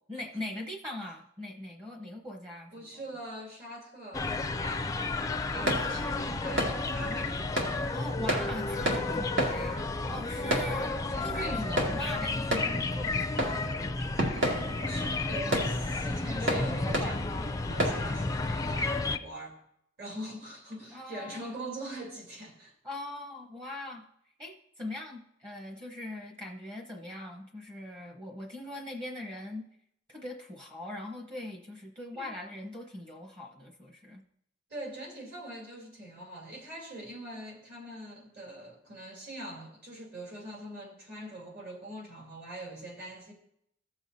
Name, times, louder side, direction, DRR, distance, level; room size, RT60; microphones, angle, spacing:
voice 1, 0.1-3.1 5.7-6.3 7.9-13.7 20.9-21.5 22.8-24.1 24.4-29.6 30.1-34.2, left 1 dB, 25° right, 0 dB, 1.0 m, -41 dB
voice 2, 2.7-5.1 5.5-7.4 10.3-10.8 11.1-11.9 14.3-19.6 20.0-22.7 32.1-32.3 34.7-43.3, right 1 dB, 55° right, -1 dB, 3.0 m, -43 dB
sound 1, 4.1-19.2, left 3 dB, 20° left, 0.4 m, -32 dB
sound 2, 5.2-18.3, right 1 dB, 70° right, 2.2 m, -34 dB
15.5 x 7.0 x 2.7 m, 0.73 s
head